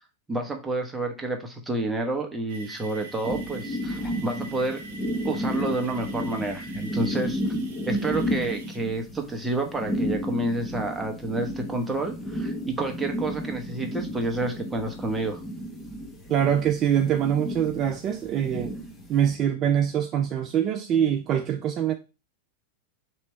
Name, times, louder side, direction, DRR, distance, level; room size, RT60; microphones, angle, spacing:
voice 1, 0.3-4.9 5.2-7.5 7.9-15.4, right 2 dB, 10° right, 1.0 m, -29 dB
sound 1, 2.5-8.8, right 3 dB, 65° right, 1.1 m, -45 dB
sound 2, 3.2-19.3, equal, 15° left, 1.0 m, -32 dB
voice 2, 16.3-18.7 19.1-21.9, right 9 dB, 35° right, 0.5 m, -24 dB
3.2 x 3.0 x 4.4 m
hypercardioid pair, 110°, 0 cm